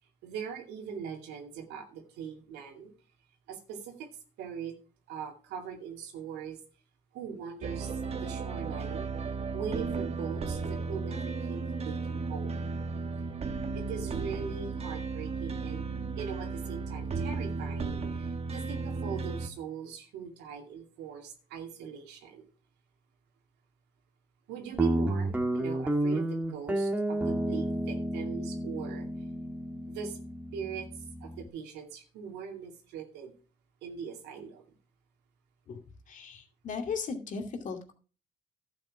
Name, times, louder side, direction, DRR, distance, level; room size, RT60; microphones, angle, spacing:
voice 1, 0.2-2.9 3.5-4.1 4.4-4.7 5.1-6.6 7.1-9.1 9.5-12.5 13.7-15.8 16.2-22.5 24.5-29.1 29.8-30.2 30.5-33.3 33.8-34.7, right 7 dB, 85° right, 2 dB, 2.4 m, -41 dB
sound 1, 7.6-19.5, right 4 dB, 35° right, 1.3 m, -34 dB
Guitar, 24.8-31.5, right 1 dB, 10° right, 1.7 m, -31 dB
voice 2, 36.1-37.9, left 5 dB, 50° left, 4 dB, 2.5 m, -37 dB
11.5 x 7.7 x 4.8 m, 0.36 s
cardioid pair, 110°, 17 cm